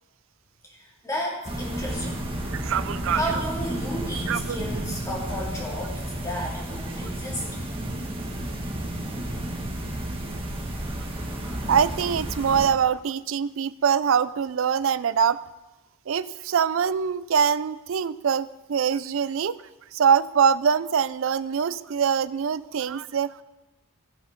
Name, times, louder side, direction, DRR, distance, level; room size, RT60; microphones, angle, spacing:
voice 1, 0.6-2.2 3.1-7.8, equal, 15° left, -4 dB, 2.7 m, -33 dB
sound 1, 1.4-12.7, right 1 dB, 25° right, 1.6 m, -32 dB
voice 2, 2.5-3.2 4.3-4.6 11.7-15.4 16.1-19.6 19.9-23.3, right 7 dB, 60° right, 16 dB, 0.4 m, -23 dB
15.5 x 5.9 x 5.8 m, 1.1 s
head